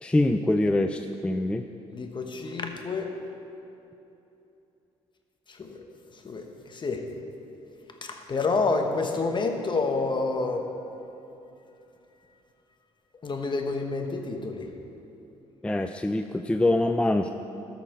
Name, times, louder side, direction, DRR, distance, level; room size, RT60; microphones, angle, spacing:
voice 1, 0.0-1.7 15.6-17.3, left 1 dB, 10° left, 7 dB, 0.4 m, -24 dB
voice 2, 1.9-3.1 5.6-5.8 6.2-7.0 8.0-10.7 13.2-14.7, left 3 dB, 40° left, 4 dB, 1.2 m, -28 dB
13.5 x 5.9 x 4.4 m, 2.9 s
supercardioid pair, 60°, 13 cm